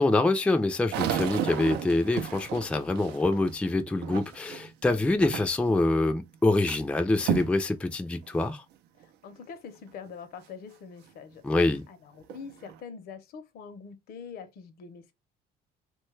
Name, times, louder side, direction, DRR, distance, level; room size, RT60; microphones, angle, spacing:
voice 1, 0.0-8.6 11.4-11.8, left 2 dB, 5° left, 0.3 m, -25 dB
sound 1, 0.9-4.7 5.2-5.8 6.1-6.8 7.2-7.6 8.2-8.3 9.0-9.1 11.6-11.7 12.2-12.8, right 10 dB, 85° right, 0.5 m, -33 dB
voice 2, 9.0-11.4 11.9-15.1, left 6 dB, 65° left, 0.6 m, -44 dB
3.1 x 2.2 x 3.1 m
cardioid pair, 110°, 17 cm